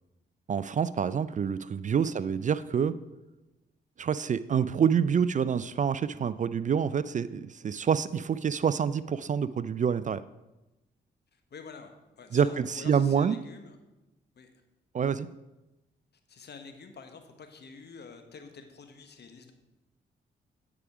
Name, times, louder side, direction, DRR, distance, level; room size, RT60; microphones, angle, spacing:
voice 1, 0.5-3.0 4.0-10.2 12.3-13.4 14.9-15.3, right 7 dB, 40° right, 16 dB, 0.4 m, -27 dB
voice 2, 11.3-13.8 14.3-14.5 16.3-19.5, left 5 dB, 55° left, 7 dB, 1.2 m, -48 dB
9.8 x 5.0 x 4.8 m, 0.99 s
supercardioid pair, 50°, 20 cm